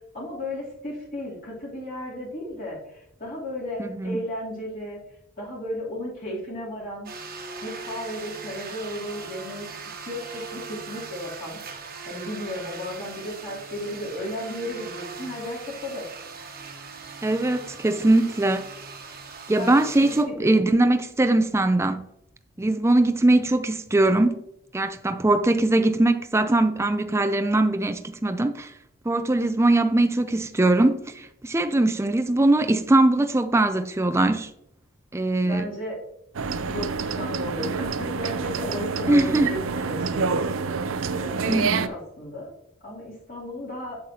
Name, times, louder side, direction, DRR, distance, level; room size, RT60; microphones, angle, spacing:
voice 1, 0.1-5.0 5.4-7.1 7.6-11.6 12.1-16.1 19.6-20.5 35.4-36.0 36.7-40.8 41.1-42.5 42.8-44.0, left 1 dB, 45° left, 3.1 m, -34 dB
voice 2, 3.8-4.2 17.2-18.7 19.5-22.0 22.6-24.4 24.7-28.7 29.1-34.5 35.1-35.6 39.1-39.5 41.5-41.8, right 2 dB, 15° right, 0.4 m, -21 dB
sound 1, 7.1-20.2, right 5 dB, 45° right, 1.1 m, -40 dB
sound 2, 36.3-41.9, right 5 dB, 70° right, 0.5 m, -27 dB
7.8 x 7.8 x 2.8 m
head